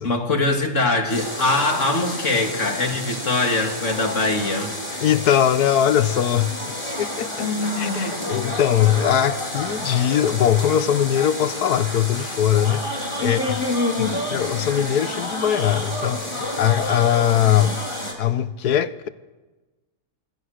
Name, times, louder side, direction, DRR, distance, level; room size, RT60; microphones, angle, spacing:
voice 1, 0.0-4.7 7.4-8.2 13.2-14.5, left 2 dB, 50° left, 2.7 m, -23 dB
sound 1, 1.1-18.1, left 1 dB, 20° left, 3.7 m, -30 dB
voice 2, 5.0-6.6 7.0-13.6 14.0-17.8 18.2-19.1, left 10 dB, 80° left, 1.5 m, -21 dB
26.0 x 24.5 x 6.5 m
omnidirectional pair, 1.6 m